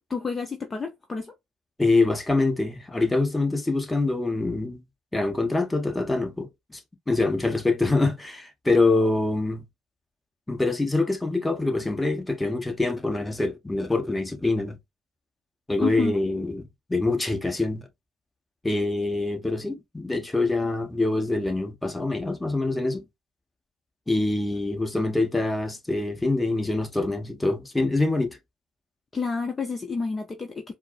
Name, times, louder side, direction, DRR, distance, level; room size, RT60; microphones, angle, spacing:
voice 1, 0.1-1.3 15.8-16.1 29.1-30.7, left 5 dB, 30° left, 0.7 m, -29 dB
voice 2, 1.8-4.8 5.1-6.8 7.1-9.6 10.5-14.8 15.7-17.9 18.6-23.1 24.1-28.4, left 2 dB, 15° left, 1.2 m, -25 dB
4.4 x 2.0 x 2.4 m
hypercardioid pair, 60°, 0 cm